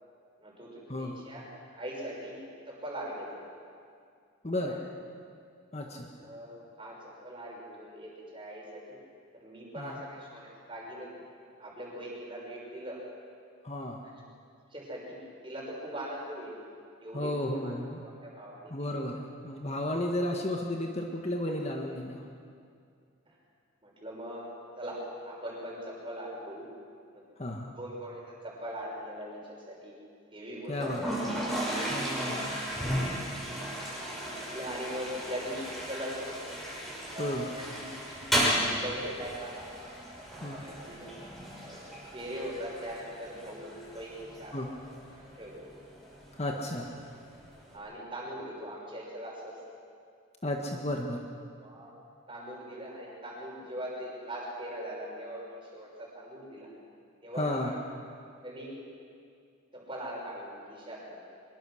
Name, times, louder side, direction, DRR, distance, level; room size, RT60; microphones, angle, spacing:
voice 1, 0.4-1.5 1.7-2.4 2.7-3.4 4.6-4.8 5.9-9.0 9.3-11.1 11.6-13.0 14.7-15.2 15.4-16.5 17.0-17.7 18.0-18.9 21.9-22.0 23.3-23.4 23.8-24.5 24.8-26.7 27.1-27.2 27.8-29.9 30.3-30.8 31.6-31.8 34.4-36.6 37.1-39.7 40.4-41.1 41.6-41.8 42.1-44.7 45.1-45.7 47.6-49.5 51.6-52.0 52.3-56.7 57.2-57.7 58.4-58.7 59.7-61.2, equal, 25° right, -3 dB, 6.1 m, -41 dB
voice 2, 4.4-4.8 5.7-6.1 9.8-10.0 13.6-14.0 17.1-18.0 18.7-22.3 27.4-27.7 30.7-31.0 31.8-32.6 37.2-37.5 40.4-40.6 44.5-44.7 46.4-46.9 50.4-51.2 57.4-57.7, left 1 dB, 30° left, 1 dB, 1.5 m, -33 dB
Toilet flush, 30.7-47.7, equal, ahead, 5.7 m, -35 dB
24.0 x 22.0 x 6.4 m, 2.3 s
head